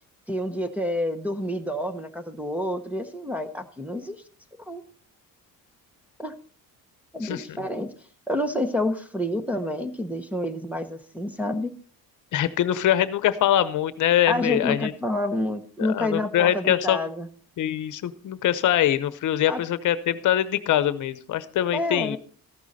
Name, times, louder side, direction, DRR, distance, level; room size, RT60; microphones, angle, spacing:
voice 1, 0.3-4.2 4.7-4.8 6.2-6.3 7.1-7.9 8.3-11.7 14.3-17.3 19.5-19.6 21.7-22.2, left 1 dB, 5° right, 2 dB, 0.8 m, -28 dB
voice 2, 7.2-7.6 12.3-14.9 15.8-17.0 17.6-22.2, left 11 dB, 55° left, 15 dB, 0.9 m, -23 dB
14.0 x 11.5 x 4.2 m, 0.42 s
cardioid pair, 170°, 35 cm